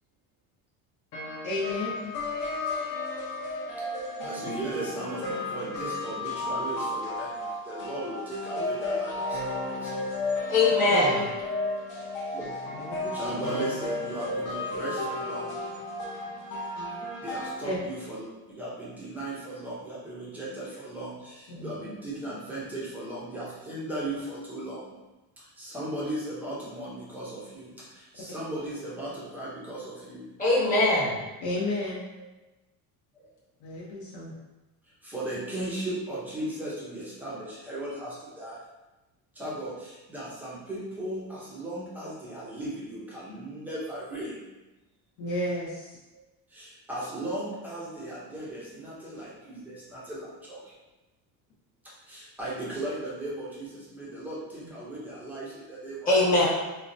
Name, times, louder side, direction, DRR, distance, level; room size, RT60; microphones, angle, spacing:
sound 1, 1.1-17.5, left 2 dB, 50° left, 0.7 m, -33 dB
voice 1, 1.4-2.1 10.9-11.2 12.7-13.1 17.6-17.8 21.5-21.8 31.4-32.0 33.6-34.3 45.2-46.0, left 1 dB, 75° left, -7 dB, 0.9 m, -32 dB
voice 2, 4.2-9.9 12.3-12.5 13.0-15.6 17.2-24.9 25.4-30.3 32.2-32.3 33.1-33.3 34.8-38.6 39.3-44.5 46.1-46.2 46.5-50.7 51.8-56.1, right 1 dB, 5° right, -7 dB, 0.4 m, -37 dB
voice 3, 10.5-11.2 30.4-31.2 56.1-56.5, left 2 dB, 20° left, -7 dB, 1.0 m, -21 dB
4.1 x 2.2 x 2.5 m, 1.1 s
cardioid pair, 175°, 42 cm